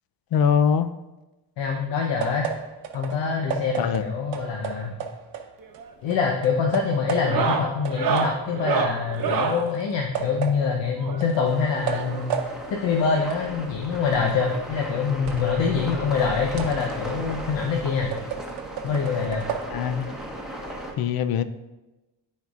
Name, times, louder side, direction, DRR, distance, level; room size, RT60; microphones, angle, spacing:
voice 1, 0.3-0.9 3.8-4.0 19.7-20.1 21.0-21.4, left 7 dB, 55° left, 11 dB, 0.5 m, -22 dB
voice 2, 1.6-2.5 2.9-4.9 6.0-18.1 18.8-19.5, left 5 dB, 75° left, 0 dB, 0.9 m, -25 dB
sound 1, 2.2-5.8 6.1-7.6 7.8-15.6 16.0-19.6, right 7 dB, 85° right, 0.8 m, -34 dB
sound 2, 5.6-5.9 6.2-6.6 7.1-9.7 11.0-12.4 13.4-13.5 13.7-13.8 14.3-14.4 15.7-15.8 17.1-17.2, right 6 dB, 50° right, 0.9 m, -28 dB
sound 3, 11.4-20.9, equal, ahead, 1.2 m, -36 dB
12.5 x 4.6 x 2.4 m, 1.1 s
cardioid pair, 105°, 45 cm